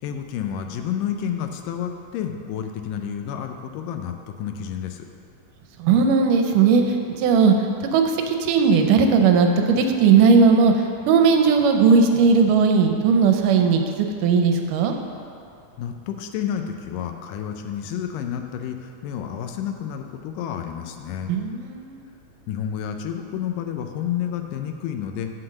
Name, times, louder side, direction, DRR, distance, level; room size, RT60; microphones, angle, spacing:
voice 1, 0.0-5.1 15.8-21.3 22.5-25.3, left 9 dB, 85° left, 5 dB, 2.3 m, -30 dB
voice 2, 5.8-13.8 14.2-14.9 21.3-22.0, right 5 dB, 80° right, 4 dB, 2.2 m, -17 dB
7.8 x 6.0 x 6.4 m, 2.5 s
omnidirectional pair, 3.8 m